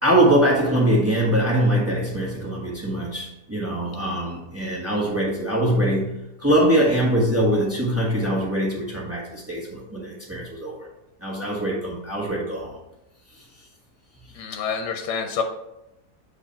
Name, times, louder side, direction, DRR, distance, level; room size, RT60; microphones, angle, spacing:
voice 1, 0.0-10.9 11.2-12.8, right 1 dB, 10° right, -3 dB, 1.2 m, -22 dB
voice 2, 14.4-15.4, left 6 dB, 85° left, 5 dB, 1.3 m, -27 dB
8.0 x 3.3 x 4.3 m, 0.88 s
omnidirectional pair, 1.7 m